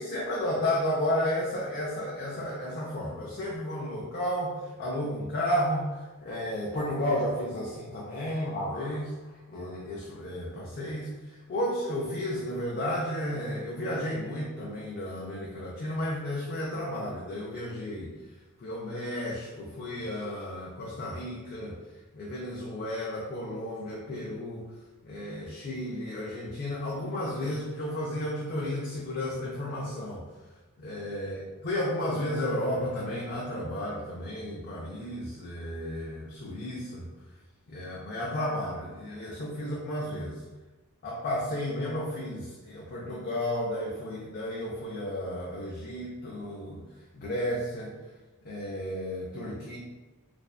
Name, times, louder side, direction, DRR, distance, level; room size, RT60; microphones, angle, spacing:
voice 1, 0.0-18.1 18.6-21.8 22.1-24.6 25.0-30.2 30.8-37.1 37.7-40.4 41.0-46.8 47.1-47.9 48.4-49.8, left 1 dB, 45° left, -4 dB, 0.4 m, -33 dB
2.5 x 2.2 x 2.3 m, 1.2 s
head